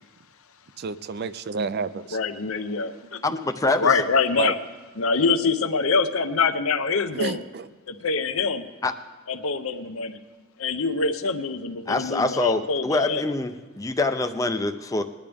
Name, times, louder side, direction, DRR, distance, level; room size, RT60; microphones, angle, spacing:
voice 1, 0.8-2.2 4.4-4.5 7.1-7.7, right 5 dB, 45° right, 14 dB, 0.4 m, -30 dB
voice 2, 2.1-3.2 3.7-4.6 5.0-7.4 7.9-8.6 9.3-10.2 10.6-13.2, left 4 dB, 70° left, 9 dB, 0.7 m, -25 dB
voice 3, 3.2-3.9 8.8-8.9 11.9-15.0, left 2 dB, 15° left, 7 dB, 0.4 m, -25 dB
21.0 x 10.5 x 3.5 m, 1.3 s
head